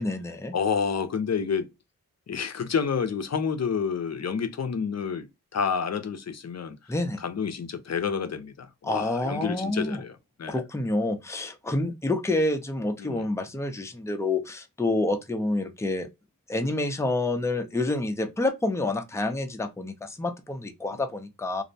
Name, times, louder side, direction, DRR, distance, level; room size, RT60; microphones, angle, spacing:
voice 1, 0.0-0.5 6.9-7.2 8.8-10.0 10.5-16.1 16.5-21.6, left 2 dB, 10° left, 0.5 m, -28 dB
voice 2, 0.5-1.7 2.3-5.3 5.5-6.8 7.2-10.1 10.4-10.6 13.0-13.3, left 6 dB, 50° left, 0.6 m, -29 dB
2.6 x 2.0 x 2.7 m
cardioid pair, 55°, 34 cm